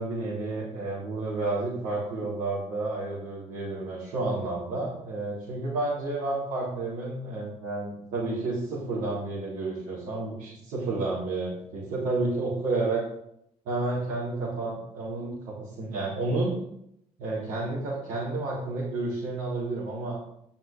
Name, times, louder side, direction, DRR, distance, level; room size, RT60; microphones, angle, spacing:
voice 1, 0.0-13.0 13.6-16.5 17.2-20.2, right 2 dB, 85° right, -10 dB, 4.1 m, -31 dB
10.0 x 5.9 x 5.3 m, 0.74 s
supercardioid pair, 70°, 14 cm